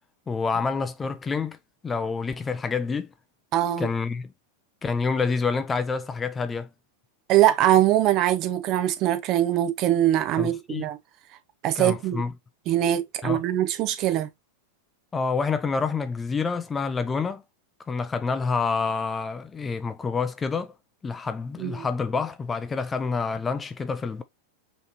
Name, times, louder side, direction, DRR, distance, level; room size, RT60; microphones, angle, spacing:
voice 1, 0.3-1.6 1.8-3.1 3.8-4.3 4.8-6.7 10.4-10.8 11.8-12.3 13.2-13.4 15.1-17.4 17.9-20.7 21.0-24.2, left 4 dB, 20° left, 0.6 m, -27 dB
voice 2, 3.5-3.9 7.3-11.0 11.6-12.2 12.7-14.3 21.6-21.8, right 12 dB, 45° right, 0.9 m, -22 dB
5.6 x 3.2 x 2.7 m
hypercardioid pair, 115°, 0 cm